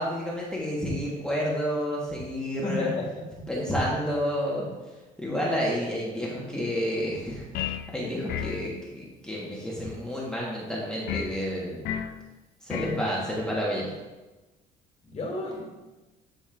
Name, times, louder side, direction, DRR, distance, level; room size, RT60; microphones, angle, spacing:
voice 1, 0.0-2.9 3.5-4.7 5.2-7.6 7.9-11.8 12.6-13.9, equal, 5° left, -5 dB, 1.3 m, -30 dB
voice 2, 2.6-3.7 15.1-15.6, left 1 dB, 40° left, -1 dB, 2.0 m, -32 dB
sound 1, 7.5-7.9 8.3-8.7 11.1-11.4 11.8-12.2 12.7-13.0, left 9 dB, 70° left, 0.4 m, -31 dB
10.5 x 4.2 x 2.5 m, 1.1 s
cardioid pair, 110°, 17 cm